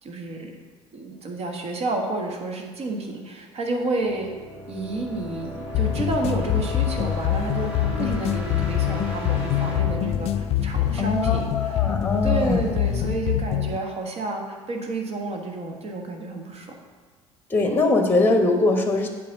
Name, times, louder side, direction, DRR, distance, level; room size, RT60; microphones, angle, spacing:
voice 1, 0.0-0.5 0.9-4.3 4.7-11.9 12.2-16.8, right 2 dB, 40° right, 2 dB, 1.5 m, -30 dB
sound 1, 3.9-11.6, equal, 10° right, 2.4 m, -36 dB
sound 2, 5.7-13.8, left 11 dB, 40° left, 0.4 m, -25 dB
voice 2, 11.0-12.6 17.5-19.1, left 2 dB, 15° left, 4 dB, 1.1 m, -21 dB
8.4 x 4.4 x 6.9 m, 1.4 s
figure-of-eight pair, 60°, 16 cm